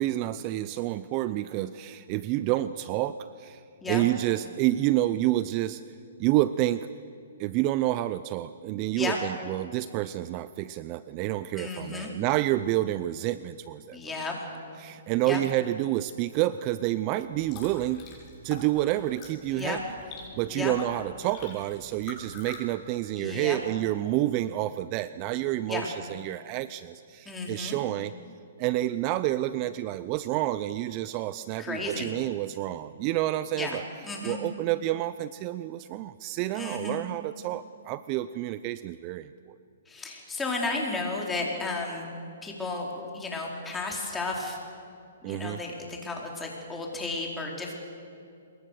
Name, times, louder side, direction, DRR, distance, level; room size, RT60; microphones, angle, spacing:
voice 1, 0.0-5.8 6.2-6.9 7.4-14.0 14.8-18.1 18.4-19.8 20.4-28.1 28.6-33.8 34.2-39.6 45.2-45.6, right 15 dB, 35° right, 14 dB, 0.6 m, -29 dB
voice 2, 11.5-12.1 13.9-14.4 15.2-15.4 19.5-19.8 20.5-20.8 23.1-23.6 25.7-25.9 27.2-27.8 31.6-32.1 33.6-33.8 34.0-34.4 36.5-37.0 39.9-42.0 42.4-44.6 45.2-47.8, left 3 dB, 10° left, -1 dB, 4.5 m, -33 dB
sound 1, 17.3-22.6, left 5 dB, 25° left, 6.5 m, -46 dB
27.0 x 22.0 x 6.8 m, 2.5 s
hypercardioid pair, 145°, 0 cm